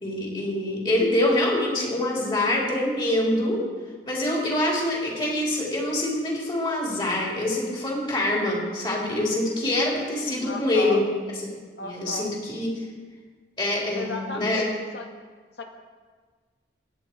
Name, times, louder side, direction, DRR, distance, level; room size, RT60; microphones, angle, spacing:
voice 1, 0.0-3.6 4.1-11.0 11.8-12.8 13.6-14.7, left 1 dB, 25° left, -3 dB, 3.6 m, -25 dB
voice 2, 10.5-11.0 11.8-12.3 13.9-15.1 15.6-15.7, left 2 dB, 70° left, 3 dB, 1.9 m, -34 dB
22.0 x 9.6 x 4.6 m, 1.5 s
head